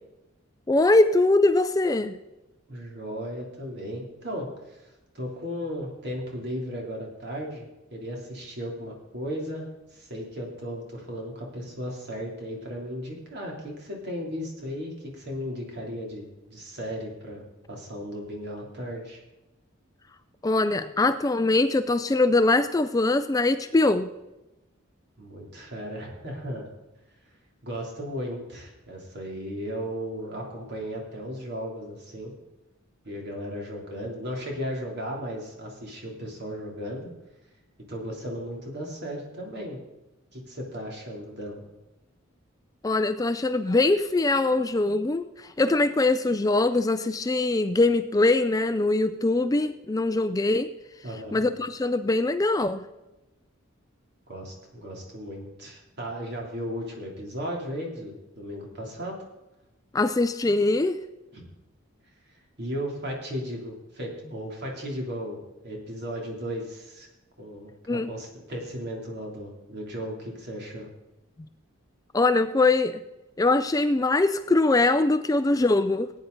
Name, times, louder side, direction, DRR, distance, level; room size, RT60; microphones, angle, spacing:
voice 1, 0.7-2.2 20.4-24.1 42.8-50.7 51.3-52.8 59.9-61.0 67.9-68.1 72.1-73.0 73.4-76.1, left 2 dB, 15° left, 11 dB, 0.3 m, -22 dB
voice 2, 2.7-19.2 25.2-26.7 27.6-32.3 33.0-37.1 37.9-39.8 40.3-41.6 51.0-51.4 54.3-59.2 61.3-61.5 62.6-67.1 67.4-70.9, equal, 50° right, -1 dB, 3.1 m, -36 dB
17.5 x 9.3 x 3.9 m, 1.0 s
head